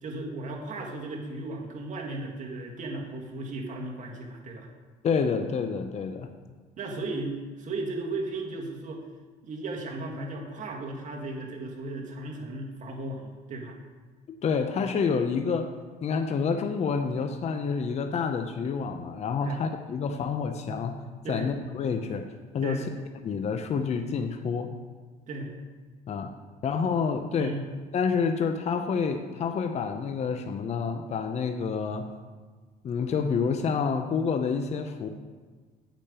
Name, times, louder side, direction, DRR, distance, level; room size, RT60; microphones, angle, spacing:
voice 1, 0.0-4.7 6.8-9.0 9.4-13.7 19.4-19.6 21.2-21.5 22.6-22.9 25.3-25.5 27.4-27.6, right 2 dB, 50° right, 0 dB, 1.7 m, -36 dB
voice 2, 5.0-6.3 14.4-15.7 16.0-21.0 21.3-22.3 22.5-22.8 23.2-24.7 26.1-26.3 26.6-27.5 27.9-32.1 32.8-35.1, left 5 dB, 40° left, 6 dB, 0.6 m, -28 dB
8.7 x 5.1 x 6.8 m, 1.4 s
cardioid pair, 110°, 17 cm